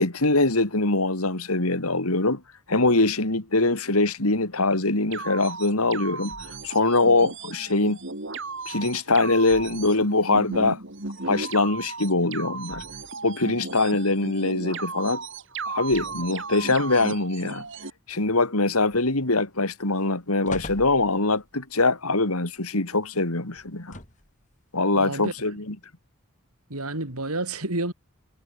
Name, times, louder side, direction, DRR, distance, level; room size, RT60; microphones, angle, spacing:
voice 1, 0.0-2.4 2.7-6.3 6.6-8.0 8.7-10.8 11.3-12.8 13.2-15.2 15.6-17.6 18.1-24.0 24.7-25.7, left 2 dB, 85° left, 3.2 m, -23 dB
sound 1, 5.1-17.9, right 3 dB, 55° right, 3.4 m, -35 dB
sound 2, 18.9-19.4 19.8-20.0 20.4-21.5 23.6-24.4 25.2-25.3, left 2 dB, 35° left, 7.0 m, -40 dB
voice 2, 24.9-25.3 26.7-27.9, right 2 dB, 85° right, 5.7 m, -29 dB
head